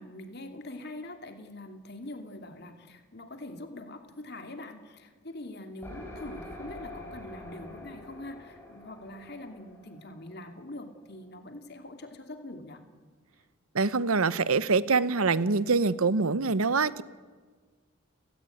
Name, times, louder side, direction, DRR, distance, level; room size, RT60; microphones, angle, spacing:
voice 1, 0.0-12.8, left 1 dB, 50° left, 6 dB, 2.7 m, -43 dB
sound 1, 5.8-11.4, left 1 dB, 10° left, 6.1 m, -46 dB
voice 2, 13.7-17.0, right 4 dB, 85° right, 16 dB, 0.9 m, -25 dB
30.0 x 18.0 x 9.3 m, 1.5 s
head